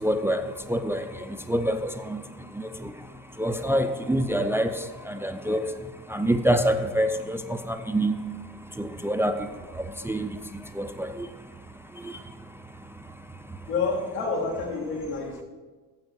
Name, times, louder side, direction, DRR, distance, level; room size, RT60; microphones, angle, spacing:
voice 1, 0.0-1.0 1.5-2.2 2.6-2.9 3.4-5.7 6.1-8.1 8.8-9.5 9.8-10.3 10.8-11.3 12.0-12.1, right 1 dB, 5° right, 8 dB, 0.4 m, -26 dB
voice 2, 13.7-15.4, left 4 dB, 85° left, -1 dB, 2.2 m, -28 dB
9.4 x 7.1 x 6.2 m, 1.3 s
hypercardioid pair, 85°, 46 cm